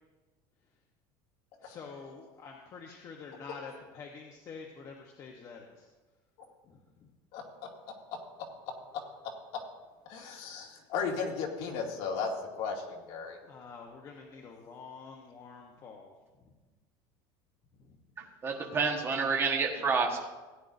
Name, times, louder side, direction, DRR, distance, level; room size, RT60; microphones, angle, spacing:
voice 1, 1.6-5.9 6.7-6.8 13.5-16.1 19.7-19.9, left 5 dB, 35° left, 1 dB, 1.1 m, -47 dB
voice 2, 10.1-12.3 12.6-13.4, left 5 dB, 65° left, -1 dB, 2.4 m, -35 dB
voice 3, 18.4-20.3, right 4 dB, 25° right, 0 dB, 1.4 m, -29 dB
17.0 x 9.9 x 2.7 m, 1.2 s
cardioid pair, 160°, 10 cm